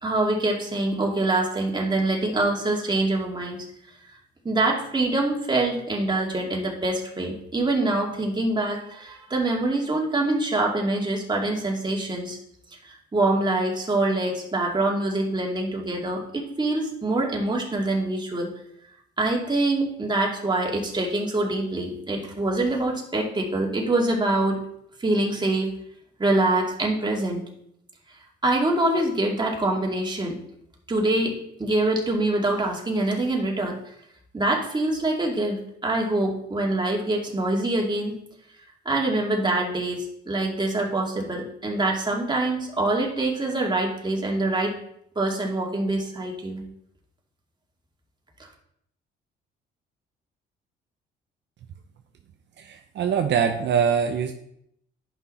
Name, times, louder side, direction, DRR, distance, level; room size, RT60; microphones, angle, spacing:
voice 1, 0.0-3.6 4.4-12.4 12.8-18.5 19.2-24.6 25.0-25.7 26.2-27.4 28.4-30.4 30.9-33.8 34.3-38.2 38.8-44.7 45.2-46.6, right 2 dB, 20° right, 0 dB, 2.3 m, -25 dB
voice 2, 52.6-54.3, right 7 dB, 65° right, 5 dB, 0.7 m, -23 dB
10.5 x 5.7 x 4.2 m, 0.73 s
cardioid pair, 90°, 20 cm